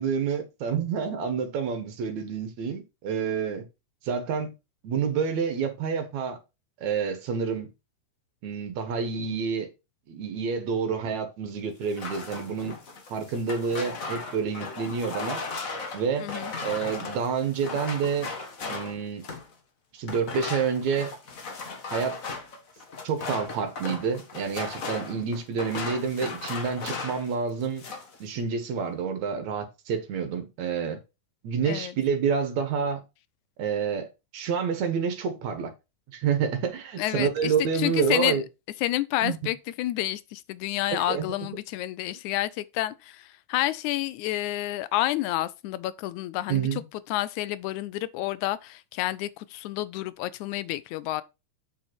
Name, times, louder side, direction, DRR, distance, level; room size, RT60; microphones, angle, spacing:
voice 1, 0.0-3.7 4.0-4.5 4.8-6.4 6.8-7.7 8.4-9.7 10.1-12.7 13.1-15.4 15.9-16.3 16.6-18.3 18.7-19.3 19.9-21.1 21.9-22.2 23.0-27.8 28.2-31.0 31.4-33.0 33.6-35.7 36.1-38.4 39.2-39.4 40.9-41.3 46.5-46.8, right 6 dB, 70° right, 2.6 m, -28 dB
sound 1, 11.8-19.5 20.0-27.3 27.6-28.2, left 4 dB, 45° left, 1.2 m, -36 dB
voice 2, 16.2-16.5 31.7-32.0 37.0-38.4 38.8-46.8 47.1-51.2, left 15 dB, 85° left, 2.0 m, -29 dB
7.0 x 5.6 x 4.5 m
omnidirectional pair, 3.4 m